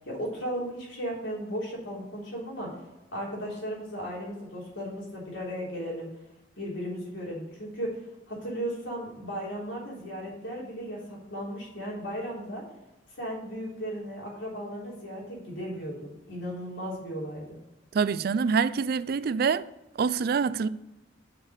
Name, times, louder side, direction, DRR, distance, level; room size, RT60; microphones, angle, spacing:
voice 1, 0.0-2.7 3.1-6.1 6.6-12.6 13.1-17.6, equal, 85° left, 3.6 m, -36 dB
voice 2, 17.9-19.7 20.0-20.7, right 5 dB, 55° right, 0.4 m, -25 dB
6.6 x 5.9 x 6.5 m
head